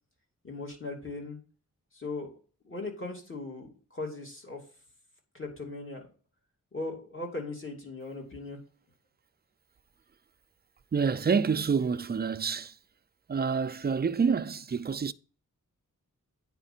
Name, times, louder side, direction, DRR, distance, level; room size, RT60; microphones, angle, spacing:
voice 1, 0.4-1.4 1.9-2.3 2.6-4.6 5.3-6.1 6.7-8.6, left 3 dB, 40° left, 2.6 m, -38 dB
voice 2, 10.9-12.8 13.3-15.1, right 6 dB, 30° right, 0.4 m, -27 dB
8.9 x 5.0 x 4.3 m
wide cardioid pair, 120°, 33 cm